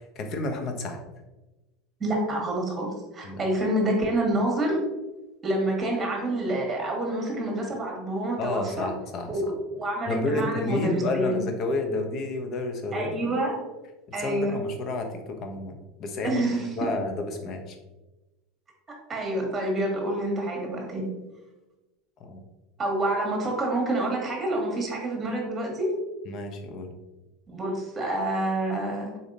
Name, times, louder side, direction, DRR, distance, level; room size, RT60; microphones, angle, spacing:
voice 1, 0.2-1.0 3.2-3.4 8.4-9.5 10.1-13.1 14.2-16.4 16.8-17.8 22.2-22.4 26.3-26.9, left 2 dB, 45° left, 5 dB, 0.7 m, -30 dB
voice 2, 2.0-2.9 3.1-4.8 5.4-8.9 9.3-11.4 12.9-13.6 14.1-14.5 16.2-16.7 19.1-21.1 22.8-25.9 27.5-29.2, right 1 dB, 20° right, 0 dB, 1.3 m, -27 dB
3.8 x 3.5 x 2.6 m, 1.1 s
supercardioid pair, 115°, 0 cm